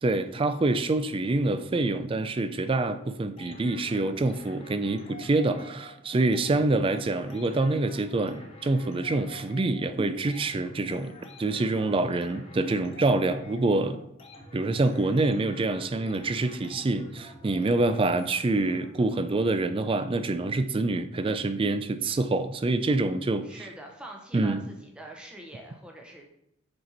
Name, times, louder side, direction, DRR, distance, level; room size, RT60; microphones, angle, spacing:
voice 1, 0.0-14.0 14.5-23.5 24.3-24.6, right 2 dB, 25° right, 11 dB, 0.3 m, -26 dB
sound 1, 3.4-19.1, left 2 dB, 30° left, 1.0 m, -48 dB
voice 2, 23.4-26.3, right 1 dB, 5° right, 1 dB, 0.7 m, -44 dB
6.6 x 4.3 x 4.1 m, 0.79 s
head